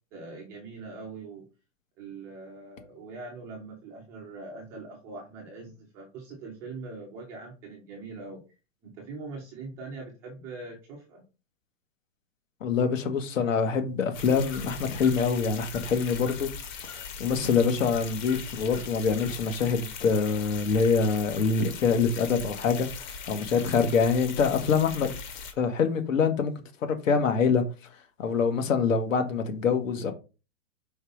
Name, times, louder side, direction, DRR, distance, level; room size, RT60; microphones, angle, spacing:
voice 1, 0.1-1.4 2.0-8.4 8.8-11.2, right 3 dB, 5° right, 0.4 m, -42 dB
voice 2, 12.6-16.5 16.9-25.2 25.6-26.5 26.8-27.6 28.2-30.1, left 5 dB, 85° left, 1.7 m, -25 dB
sound 1, 14.1-25.5, left 6 dB, 35° left, 1.1 m, -40 dB
5.4 x 3.7 x 5.2 m
supercardioid pair, 165°, 38 cm